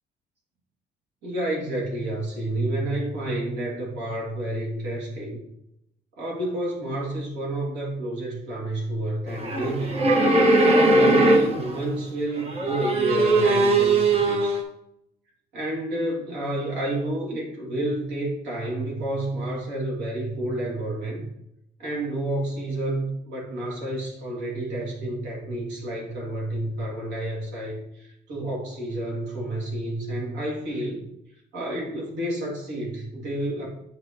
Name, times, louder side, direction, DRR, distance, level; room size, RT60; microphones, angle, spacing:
voice 1, 1.2-5.4 6.2-10.1 10.6-14.6 15.5-21.3 21.8-31.1 31.5-33.7, right 1 dB, 85° right, -3 dB, 2.5 m, -30 dB
sound 1, 9.3-11.8 12.4-14.6, right 2 dB, 35° right, 0.9 m, -20 dB
8.2 x 4.8 x 3.0 m, 0.79 s
cardioid pair, 150°, 17 cm